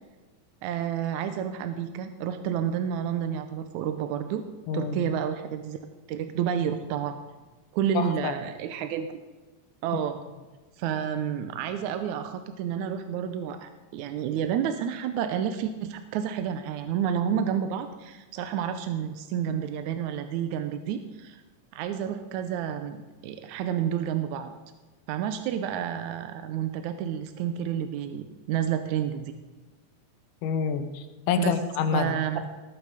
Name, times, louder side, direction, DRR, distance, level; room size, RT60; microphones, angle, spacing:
voice 1, 0.6-4.4 4.7-5.8 6.1-7.2 7.7-9.1 9.8-10.2 10.8-21.4 21.7-24.5 25.1-29.3 31.4-31.6 31.9-32.6, right 9 dB, 75° right, 8 dB, 1.9 m, -30 dB
voice 2, 4.7-5.1 7.9-8.4 30.4-32.1, left 7 dB, 75° left, 9 dB, 2.3 m, -27 dB
20.0 x 8.7 x 5.0 m, 1.2 s
omnidirectional pair, 3.9 m